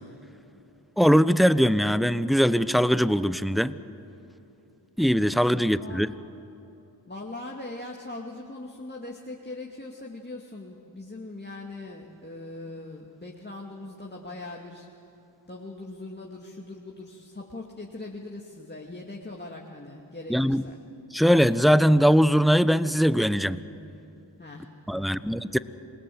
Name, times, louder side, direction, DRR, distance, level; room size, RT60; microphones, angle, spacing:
voice 1, 0.4-0.9 5.5-6.1 7.1-15.0 15.4-20.8 24.4-25.3 25.5-25.6, left 2 dB, 20° left, -1 dB, 2.4 m, -41 dB
voice 2, 1.0-3.8 5.0-6.1 20.3-20.6 21.1-23.6 24.9-25.6, equal, ahead, 15 dB, 0.8 m, -21 dB
27.5 x 18.5 x 7.9 m, 2.8 s
supercardioid pair, 45°, 47 cm